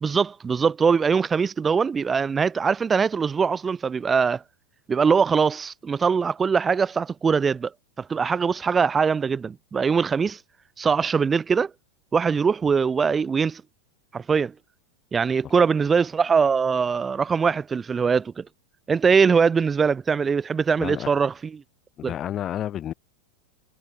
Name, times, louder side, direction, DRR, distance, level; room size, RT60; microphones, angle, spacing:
voice 1, 0.0-4.4 4.9-7.7 8.0-10.4 10.8-11.7 12.1-13.6 14.1-14.5 15.1-18.4 18.9-21.6 22.0-22.1, right 5 dB, 15° right, 1.1 m, -22 dB
voice 2, 20.8-21.1 22.0-22.9, left 11 dB, 30° left, 1.4 m, -30 dB
figure-of-eight pair, 90°, 0 cm